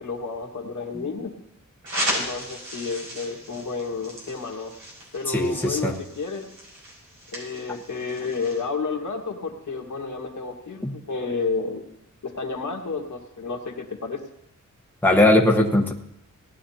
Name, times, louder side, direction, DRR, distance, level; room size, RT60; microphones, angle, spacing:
voice 1, 0.0-1.3 2.1-4.7 5.1-6.5 7.3-11.8 12.2-14.2, left 4 dB, 70° left, 1 dB, 1.8 m, -31 dB
sound 1, 1.8-8.6, equal, 85° right, 5.5 m, -35 dB
voice 2, 5.3-5.9 10.8-10.9 15.0-15.9, left 1 dB, 5° left, -1 dB, 1.2 m, -19 dB
18.0 x 11.0 x 2.9 m, 0.79 s
wide cardioid pair, 105°, 32 cm